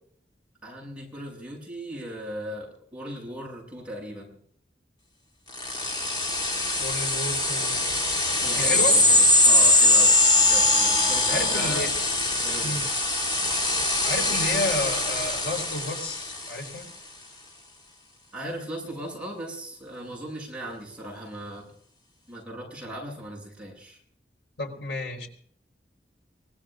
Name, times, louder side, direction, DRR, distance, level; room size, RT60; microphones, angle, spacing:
voice 1, 0.6-4.4 8.4-10.2 10.5-11.9 12.4-12.9 18.3-21.7 22.3-24.0, equal, 5° right, -3 dB, 7.9 m, -37 dB
sound 1, 5.5-16.6, left 2 dB, 25° left, 3.9 m, -22 dB
voice 2, 6.8-7.9 8.6-9.0 11.3-11.9 12.6-12.9 14.0-16.9 24.6-25.3, left 2 dB, 85° left, 3 dB, 4.4 m, -31 dB
25.0 x 20.0 x 2.6 m, 0.62 s
head